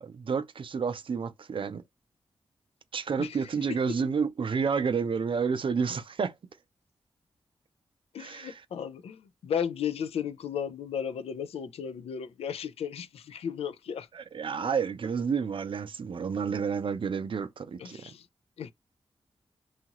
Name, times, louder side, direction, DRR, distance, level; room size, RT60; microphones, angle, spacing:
voice 1, 0.0-1.8 2.9-6.3 8.2-8.6 14.1-18.0, right 6 dB, 60° right, 0.5 m, -30 dB
voice 2, 8.1-14.1 17.8-18.3 18.6-18.7, left 8 dB, 80° left, 0.4 m, -35 dB
2.8 x 2.4 x 2.8 m
cardioid pair, 45°, 10 cm